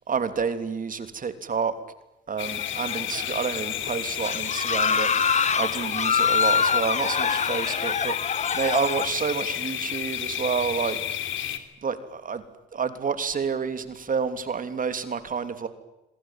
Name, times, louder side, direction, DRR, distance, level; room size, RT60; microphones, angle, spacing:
voice 1, 0.1-1.7 2.3-5.1 5.6-8.2 8.5-11.0 11.8-12.4 12.7-15.7, right 6 dB, 45° right, 10 dB, 3.1 m, -29 dB
sound 1, 2.4-11.6, left 11 dB, 75° left, 3.2 m, -31 dB
sound 2, 2.5-3.3 3.6-3.8 4.2-9.1, left 6 dB, 35° left, 1.2 m, -25 dB
26.5 x 22.5 x 9.1 m, 0.93 s
cardioid pair, 90°, 20 cm